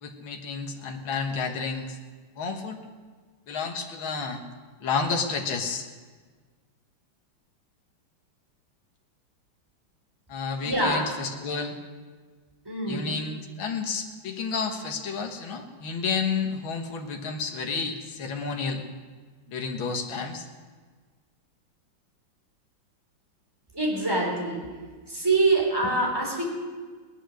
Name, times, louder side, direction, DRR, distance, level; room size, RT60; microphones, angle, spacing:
voice 1, 0.0-2.0 2.4-2.8 3.5-4.4 4.8-5.9 10.3-11.8 12.9-18.8 19.5-20.5, left 5 dB, 75° left, 3 dB, 2.2 m, -31 dB
voice 2, 10.6-11.1 12.7-13.1 23.7-24.7 25.1-26.5, right 2 dB, 10° right, -1 dB, 3.8 m, -25 dB
19.0 x 11.5 x 6.4 m, 1.5 s
omnidirectional pair, 2.3 m